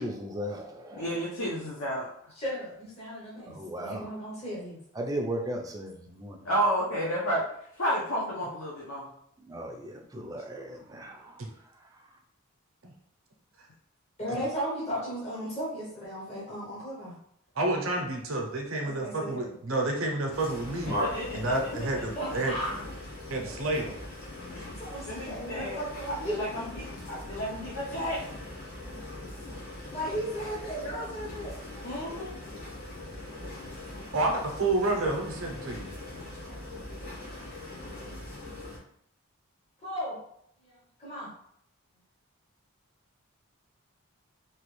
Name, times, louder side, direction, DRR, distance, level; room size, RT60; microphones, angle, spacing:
voice 1, 0.0-1.3 3.5-4.1 4.9-6.5 9.4-12.0, right 1 dB, 15° right, 1 dB, 0.4 m, -37 dB
voice 2, 1.0-2.1 6.4-7.4 7.8-9.1 20.8-21.6 25.1-25.8 26.1-28.2 31.8-32.4, equal, 70° left, -6 dB, 0.7 m, -31 dB
voice 3, 2.3-4.8 14.2-17.2 18.8-19.5 22.2-22.7 24.5-26.4 26.7-26.8 29.9-31.6 36.5-36.6 39.8-40.2 40.6-41.3, equal, 30° left, -7 dB, 0.7 m, -36 dB
voice 4, 17.6-21.0 21.3-22.5 23.3-23.9 34.1-35.9, right 2 dB, 65° right, 1 dB, 0.7 m, -29 dB
sound 1, 20.3-38.8, left 1 dB, 45° left, 1.1 m, -40 dB
3.0 x 2.3 x 3.0 m, 0.69 s
head